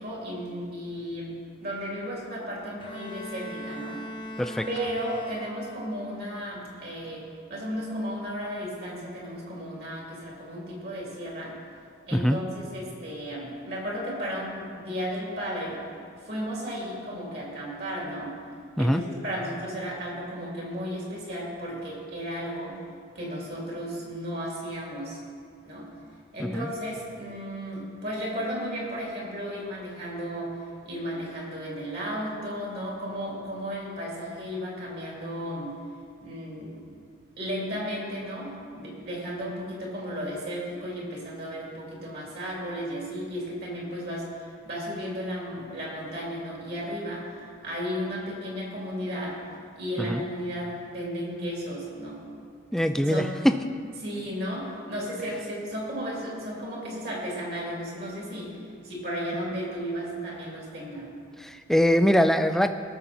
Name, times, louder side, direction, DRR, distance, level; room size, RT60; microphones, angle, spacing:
voice 1, 0.0-1.3 1.6-4.0 4.7-7.2 7.5-11.6 12.1-15.8 16.2-18.4 18.8-22.8 23.1-25.2 25.6-25.9 26.3-30.6 30.8-35.7 36.2-36.9 37.4-49.4 49.8-52.2 53.0-53.3 54.0-61.1, equal, 50° right, -4 dB, 3.1 m, -34 dB
Bowed string instrument, 2.8-6.0, equal, 25° left, 0.8 m, -39 dB
voice 2, 52.7-53.6 61.4-62.7, equal, ahead, 8 dB, 0.4 m, -22 dB
18.5 x 6.9 x 4.3 m, 2.3 s
head